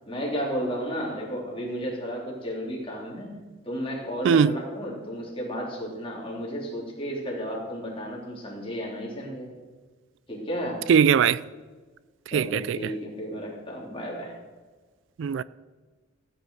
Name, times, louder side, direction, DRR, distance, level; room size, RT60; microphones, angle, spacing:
voice 1, 0.1-3.4 3.6-9.5 10.3-10.8 12.3-14.3, equal, 25° left, 3.3 m, -33 dB
voice 2, 10.9-11.4 12.3-12.9 15.2-15.4, right 7 dB, 70° right, 0.3 m, -20 dB
15.5 x 9.0 x 4.8 m
head